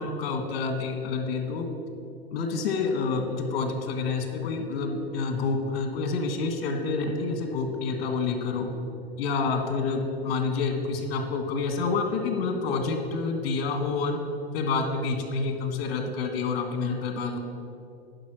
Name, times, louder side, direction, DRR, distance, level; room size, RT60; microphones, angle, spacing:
voice 1, 0.0-1.6 2.3-8.7 9.2-14.2 14.5-17.4, left 4 dB, 70° left, 4 dB, 1.5 m, -28 dB
11.0 x 5.2 x 6.2 m, 2.6 s
supercardioid pair, 135°, 30 cm